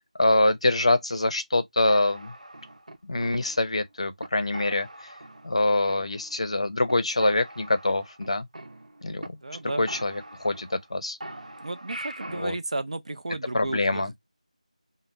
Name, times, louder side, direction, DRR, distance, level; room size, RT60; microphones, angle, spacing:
voice 1, 0.2-2.3 3.0-4.9 5.4-8.5 9.0-9.4 9.8-11.2 12.3-12.6 13.5-14.1, left 2 dB, 55° left, 0.5 m, -25 dB
sound 1, 1.9-3.8 4.2-4.3 4.5-5.6 5.9-6.6 6.9-7.0 7.2-9.3 9.5-9.6 9.9-10.9 11.2-12.5, right 1 dB, 80° right, 0.8 m, -42 dB
voice 2, 9.4-9.9 11.6-14.2, right 2 dB, 60° right, 0.4 m, -33 dB
2.5 x 2.0 x 3.2 m
figure-of-eight pair, 175°, 4 cm